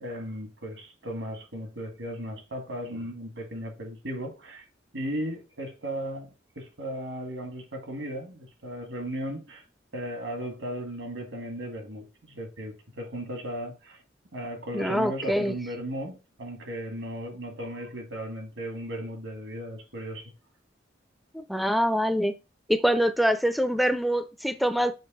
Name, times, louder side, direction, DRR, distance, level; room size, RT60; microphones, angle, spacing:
voice 1, 0.0-4.7 4.9-9.6 9.9-14.0 14.3-20.3, equal, 85° right, 1.8 m, -36 dB
voice 2, 14.7-15.5 21.3-22.3 22.7-24.9, equal, ahead, 0.4 m, -24 dB
6.4 x 2.8 x 5.3 m
head